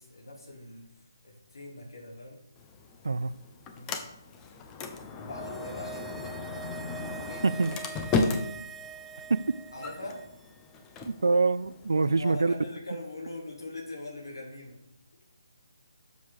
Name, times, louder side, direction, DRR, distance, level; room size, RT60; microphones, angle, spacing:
voice 1, 0.0-2.4 3.7-4.1 5.2-6.7 7.1-7.6 8.0-8.5 9.7-10.3 12.0-14.8, left 2 dB, 85° left, -2 dB, 3.5 m, -42 dB
Sliding door, 2.6-12.6, left 3 dB, 15° left, 0.8 m, -36 dB
sound 1, 5.0-10.5 10.8-10.9, right 5 dB, 5° right, 0.4 m, -44 dB
voice 2, 7.4-7.8 9.3-9.5 11.0-12.5, right 3 dB, 80° right, 18 dB, 0.5 m, -25 dB
8.0 x 7.2 x 6.3 m, 0.81 s
hypercardioid pair, 160°, 2 cm